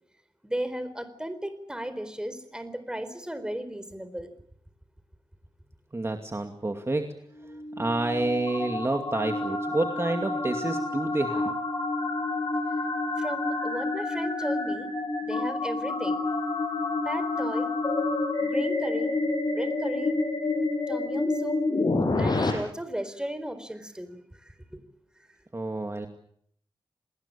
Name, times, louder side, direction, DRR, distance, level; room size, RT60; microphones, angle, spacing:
voice 1, 0.4-4.3 13.2-14.9 15.2-16.2 17.0-17.7 18.5-19.1 19.5-20.2 20.9-21.6 22.1-24.8, right 1 dB, 10° right, 12 dB, 4.2 m, -35 dB
voice 2, 5.9-7.1 7.5-11.5 25.5-26.1, right 2 dB, 30° right, 5 dB, 2.4 m, -29 dB
sound 1, 7.4-22.5, left 3 dB, 50° left, 7.7 m, -28 dB
28.0 x 20.5 x 8.5 m, 0.66 s
wide cardioid pair, 75°, 9 cm